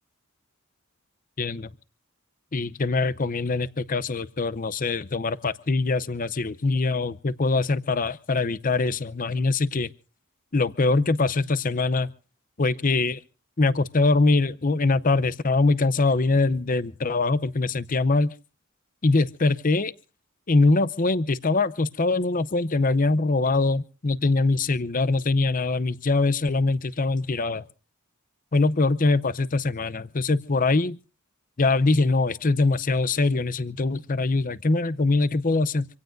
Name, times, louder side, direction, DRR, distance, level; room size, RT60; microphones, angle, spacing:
voice 1, 1.4-1.7 2.5-9.9 10.5-12.1 12.6-13.2 13.6-18.3 19.0-19.9 20.5-27.6 28.5-31.0 31.6-35.9, left 3 dB, 40° left, 0.7 m, -23 dB
26.5 x 17.0 x 2.6 m
head